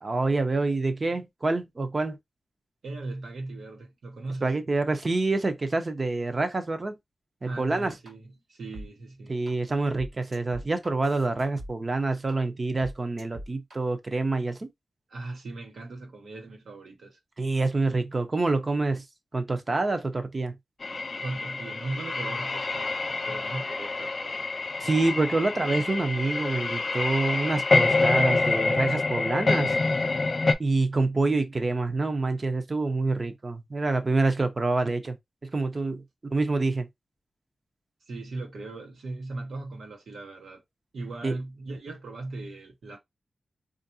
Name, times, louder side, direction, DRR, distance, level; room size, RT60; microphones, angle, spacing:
voice 1, 0.0-2.2 4.4-7.0 7.4-7.9 9.3-14.7 17.4-19.0 19.3-20.5 24.8-29.7 30.6-35.2 35.4-36.9 41.2-41.4, right 3 dB, 35° right, 0.6 m, -27 dB
voice 2, 2.8-4.6 7.4-9.4 15.1-17.2 21.2-24.5 38.1-40.6 40.9-43.0, right 2 dB, 85° right, 1.1 m, -38 dB
sound 1, 8.1-8.2 8.7-8.9 9.5-9.6 10.0-11.7 12.3-12.4 12.8-13.8, equal, 55° right, 1.4 m, -41 dB
sound 2, 20.8-30.5, left 3 dB, 40° left, 0.4 m, -27 dB
4.5 x 2.5 x 2.7 m
wide cardioid pair, 130°, 0 cm